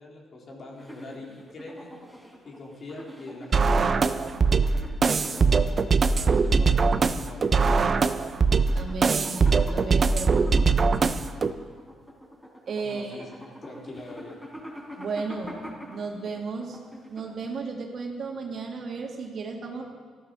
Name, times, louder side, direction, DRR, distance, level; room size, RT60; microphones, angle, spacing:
voice 1, 0.0-1.9 2.5-4.6 5.2-5.7 6.0-7.8 12.8-14.5, left 2 dB, 50° left, -2 dB, 3.6 m, -43 dB
sound 1, 0.7-17.6, equal, 5° left, 4.1 m, -44 dB
sound 2, 3.5-11.5, right 4 dB, 40° right, 0.7 m, -22 dB
voice 2, 8.7-10.7 12.7-13.3 15.0-15.6 15.9-19.8, right 4 dB, 55° right, 1 dB, 2.6 m, -34 dB
14.0 x 12.0 x 6.4 m, 1.5 s
cardioid pair, 90°, 0 cm